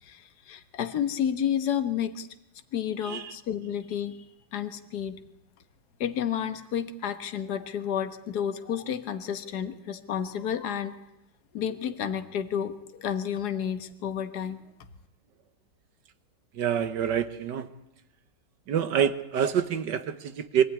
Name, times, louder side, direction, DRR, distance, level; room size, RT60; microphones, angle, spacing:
voice 1, 0.0-2.3 2.7-4.2 4.5-5.2 6.0-11.0 11.5-14.6, left 9 dB, 60° left, 9 dB, 1.7 m, -31 dB
voice 2, 16.5-17.7 18.7-20.6, right 8 dB, 70° right, 12 dB, 1.7 m, -27 dB
24.0 x 16.0 x 9.7 m, 0.86 s
omnidirectional pair, 2.0 m